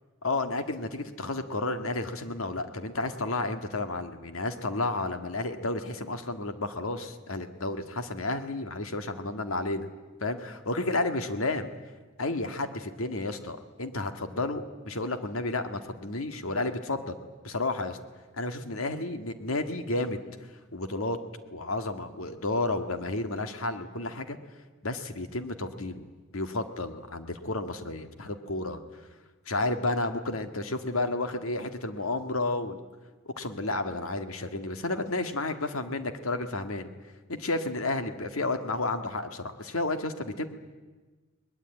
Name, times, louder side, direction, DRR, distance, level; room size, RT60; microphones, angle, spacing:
voice 1, 0.2-9.9 10.2-11.7 12.2-17.2 17.4-18.0 18.4-20.2 20.7-21.2 21.5-24.4 24.8-26.0 26.3-28.8 29.5-32.8 33.3-36.9 37.3-40.5, left 2 dB, 90° left, 8 dB, 1.9 m, -31 dB
22.0 x 20.0 x 9.1 m, 1.3 s
head